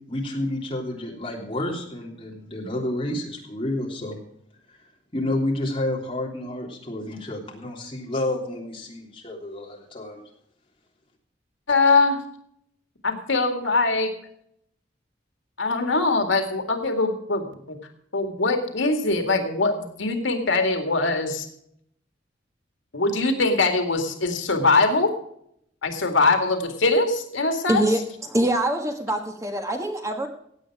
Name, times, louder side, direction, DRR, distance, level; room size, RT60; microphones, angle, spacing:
voice 1, 0.1-4.2 5.1-10.2, left 1 dB, 30° left, -1 dB, 3.2 m, -30 dB
voice 2, 11.7-12.2 13.0-14.1 15.6-17.8 18.1-21.5 22.9-25.1 25.8-27.9, left 3 dB, 85° left, 6 dB, 2.1 m, -22 dB
voice 3, 27.7-30.3, right 1 dB, 15° right, 4 dB, 1.5 m, -24 dB
16.5 x 8.8 x 4.7 m, 0.72 s
head